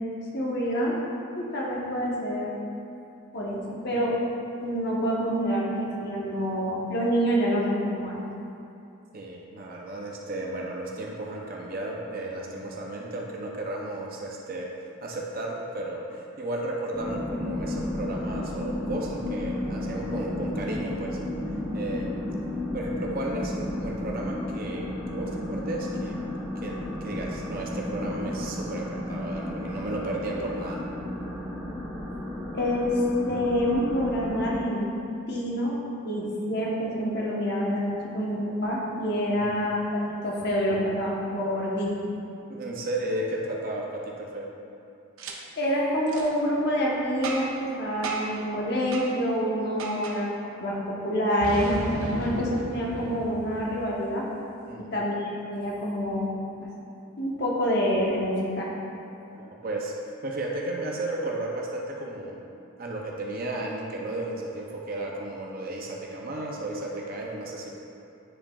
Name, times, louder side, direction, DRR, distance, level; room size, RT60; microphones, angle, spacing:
voice 1, 0.3-0.9 1.4-2.5 3.3-4.2 4.6-8.2 32.5-33.0 33.3-34.9 35.3-35.7 36.0-42.1 45.6-54.2 54.8-56.3 56.6-56.7 57.2-58.7, equal, 50° left, -4 dB, 1.1 m, -27 dB
voice 2, 9.1-14.7 15.0-21.2 21.7-22.1 22.7-26.2 26.6-30.8 39.3-39.5 42.5-44.6 54.7-54.9 59.3-59.9 60.2-62.4 62.8-67.7, right 2 dB, 40° right, -2 dB, 0.5 m, -34 dB
sound 1, 16.9-34.6, left 1 dB, 5° left, 0.7 m, -33 dB
Boom, 45.2-45.3 46.1-46.3 47.2-47.6 48.0-48.4 48.9-49.1 49.8-50.2 51.4-54.1, right 2 dB, 80° right, 0.8 m, -35 dB
9.9 x 4.8 x 2.4 m, 2.8 s
head